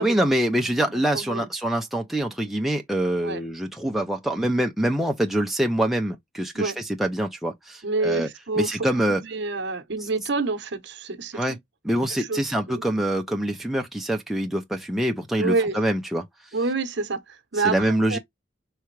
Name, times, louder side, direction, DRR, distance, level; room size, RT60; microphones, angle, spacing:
voice 1, 0.0-6.7 7.0-8.3 8.6-9.2 11.3-11.6 11.8-16.2 17.6-18.2, right 1 dB, ahead, 0.5 m, -25 dB
voice 2, 0.6-1.5 3.2-3.4 6.5-6.8 7.8-8.8 9.1-11.6 12.1-13.0 15.4-15.8 16.5-18.2, right 3 dB, 60° right, 0.9 m, -28 dB
4.7 x 3.3 x 3.1 m
head